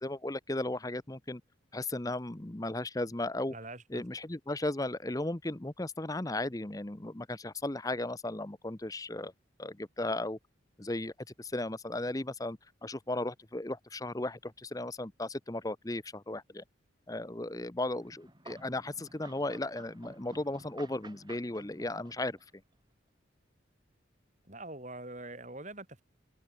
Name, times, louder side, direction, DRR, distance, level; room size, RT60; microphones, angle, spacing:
voice 1, 0.0-1.4 1.7-3.5 3.9-9.3 9.6-10.4 10.8-11.1 11.4-16.6 17.1-22.4, left 2 dB, 20° left, 0.8 m, -36 dB
voice 2, 3.5-4.0 24.4-26.0, right 2 dB, 40° right, 4.1 m, -44 dB
sound 1, 17.9-22.6, right 2 dB, 20° right, 7.8 m, -54 dB
open air
head